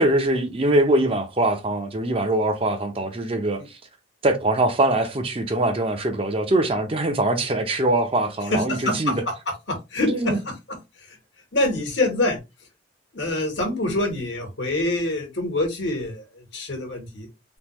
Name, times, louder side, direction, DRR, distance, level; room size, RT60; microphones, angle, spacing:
voice 1, 0.0-3.6 4.2-9.2 10.1-10.4, right 1 dB, 30° right, 0.6 m, -22 dB
voice 2, 8.5-9.2 9.7-10.8 11.5-12.4 13.1-16.2 16.5-17.3, left 1 dB, 70° left, 1.2 m, -25 dB
3.5 x 2.3 x 2.9 m
head